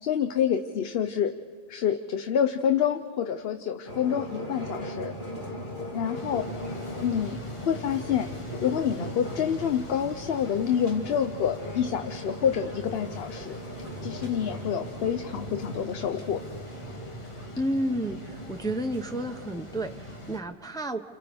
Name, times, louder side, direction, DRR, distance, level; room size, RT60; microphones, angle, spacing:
voice 1, 0.0-1.3 1.7-5.1 5.9-6.5 7.0-8.3 8.6-13.6 14.0-16.4, left 8 dB, 75° left, 8 dB, 0.9 m, -27 dB
sound 1, 3.9-20.4, equal, 55° left, 2.5 m, -39 dB
sound 2, 6.1-20.4, left 1 dB, 30° left, 1.3 m, -45 dB
voice 2, 17.6-21.0, right 1 dB, 5° left, 6 dB, 0.6 m, -31 dB
30.0 x 29.5 x 3.4 m, 2.2 s
omnidirectional pair, 1.0 m